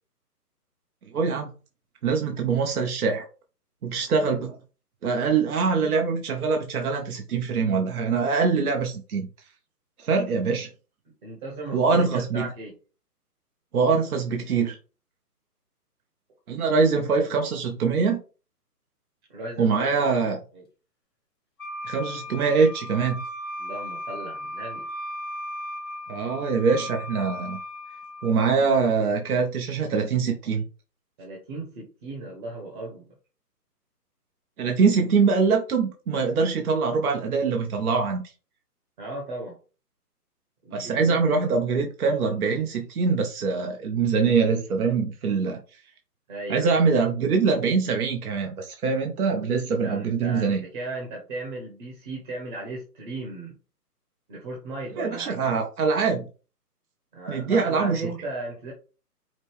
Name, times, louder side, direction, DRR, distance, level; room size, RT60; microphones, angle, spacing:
voice 1, 1.1-1.5 2.0-3.2 3.8-4.6 5.0-9.3 10.0-10.7 11.7-12.5 13.7-14.8 16.5-18.2 19.6-20.4 21.8-23.2 26.1-27.6 28.2-30.6 34.6-38.2 40.7-45.6 46.5-50.6 55.0-56.3 57.3-58.1, right 5 dB, 65° right, 0.9 m, -23 dB
voice 2, 11.2-12.7 19.3-20.1 20.5-20.6 23.6-24.9 31.2-33.1 39.0-39.6 40.6-41.3 46.3-46.8 49.8-53.5 54.3-55.4 57.1-58.7, right 2 dB, 30° right, 1.1 m, -36 dB
Wind instrument woodwind instrument, 21.6-28.3, left 1 dB, 15° left, 0.5 m, -36 dB
5.1 x 2.1 x 3.5 m
hypercardioid pair, 145°, 48 cm